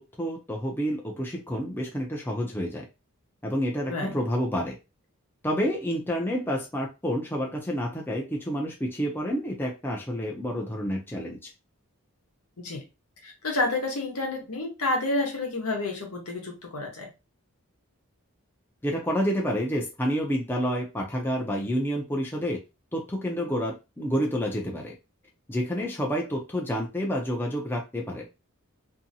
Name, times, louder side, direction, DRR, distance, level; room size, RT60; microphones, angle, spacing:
voice 1, 0.0-2.9 3.4-4.8 5.4-11.5 18.8-22.6 22.9-24.9 25.5-28.3, equal, 10° left, 0 dB, 0.5 m, -29 dB
voice 2, 3.9-4.2 12.6-12.8 13.2-17.1, left 2 dB, 80° left, 2 dB, 1.0 m, -29 dB
2.7 x 2.7 x 2.7 m, 0.27 s
head